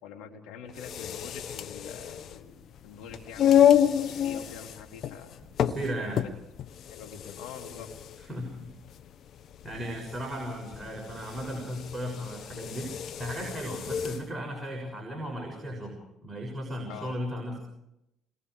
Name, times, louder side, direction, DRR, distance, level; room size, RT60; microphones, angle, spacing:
voice 1, 0.0-2.6 2.8-5.3 6.0-6.3 6.9-7.9 9.8-9.9 16.9-17.1, left 7 dB, 75° left, 2 dB, 3.1 m, -45 dB
sound 1, 0.7-14.3, left 10 dB, 60° left, 1.0 m, -29 dB
voice 2, 5.6-6.2 8.2-8.7 9.6-16.0 16.2-17.6, equal, 10° right, -1 dB, 6.7 m, -36 dB
28.5 x 22.5 x 4.9 m, 0.89 s
hypercardioid pair, 60°, 0 cm